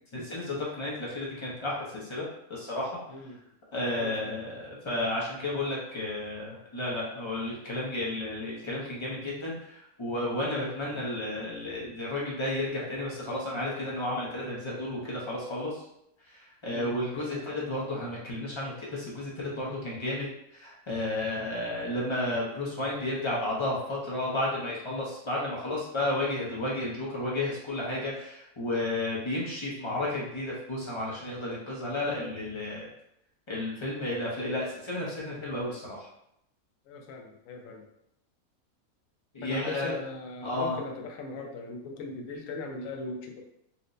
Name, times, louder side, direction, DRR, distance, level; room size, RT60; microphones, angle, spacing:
voice 1, 0.1-2.9 3.7-15.8 16.6-20.3 20.5-32.9 33.5-36.1 39.3-39.9 40.4-40.7, left 1 dB, 45° left, -5 dB, 0.4 m, -32 dB
voice 2, 3.9-4.4 10.8-11.0 16.7-17.4 21.4-21.6 36.9-37.9 39.4-43.4, left 3 dB, 70° left, 2 dB, 0.9 m, -40 dB
4.2 x 2.0 x 2.5 m, 0.78 s
omnidirectional pair, 1.6 m